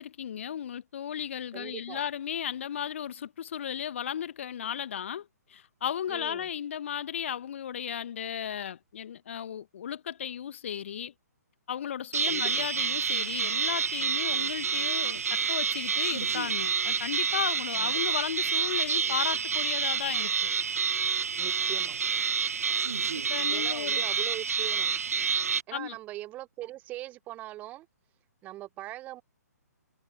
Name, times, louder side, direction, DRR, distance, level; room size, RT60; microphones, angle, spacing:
voice 1, 0.0-11.1 11.7-20.5 23.1-24.0 25.7-26.0, left 9 dB, 45° left, 1.5 m, -35 dB
voice 2, 1.5-2.0 6.1-6.5 12.3-12.7 17.8-17.9 21.4-22.0 23.5-25.0 25.7-27.9 28.4-29.2, right 15 dB, 15° right, 0.9 m, -41 dB
sound 1, 12.1-25.6, right 6 dB, 60° right, 0.9 m, -28 dB
figure-of-eight pair, 130°, 9 cm